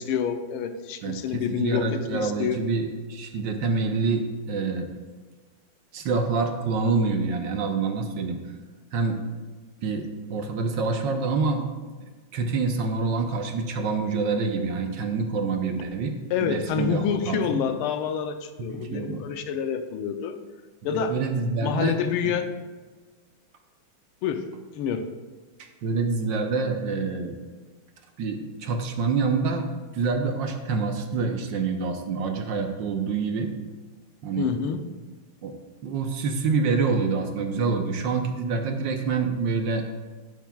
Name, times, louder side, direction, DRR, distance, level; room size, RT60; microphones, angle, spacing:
voice 1, 0.0-2.6 16.3-20.4 20.8-21.2 21.6-22.5 24.2-24.5 24.7-25.1 34.4-34.8, left 7 dB, 85° left, 8 dB, 1.6 m, -27 dB
voice 2, 1.0-4.9 5.9-8.4 8.9-9.2 9.8-11.7 12.3-16.1 16.4-17.6 18.6-19.2 20.9-21.9 22.2-22.3 25.6-27.4 28.2-29.7 29.9-33.5 34.2-34.5 35.4-35.5 35.8-39.8, right 4 dB, 65° right, 5 dB, 1.4 m, -26 dB
11.0 x 10.5 x 2.3 m, 1.3 s
omnidirectional pair, 2.3 m